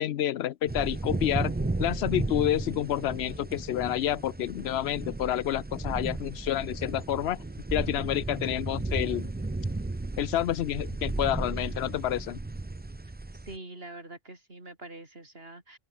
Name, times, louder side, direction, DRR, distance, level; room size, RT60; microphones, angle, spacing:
voice 1, 0.0-7.4 7.7-9.3 10.2-12.4, left 12 dB, 85° left, 0.9 m, -29 dB
sound 1, 0.7-13.6, right 2 dB, 15° right, 0.3 m, -34 dB
voice 2, 13.4-15.8, right 2 dB, 70° right, 4.5 m, -44 dB
open air
omnidirectional pair, 1.1 m